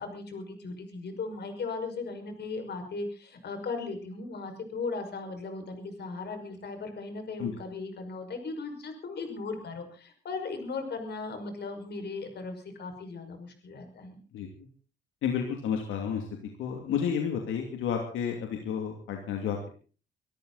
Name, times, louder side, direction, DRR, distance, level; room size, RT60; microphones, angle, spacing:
voice 1, 0.0-14.2, left 4 dB, 55° left, 6 dB, 5.8 m, -37 dB
voice 2, 14.3-14.7 15.2-16.2 16.6-19.7, left 7 dB, 85° left, 3 dB, 2.8 m, -31 dB
24.0 x 13.5 x 4.2 m, 0.39 s
cardioid pair, 90°, 20 cm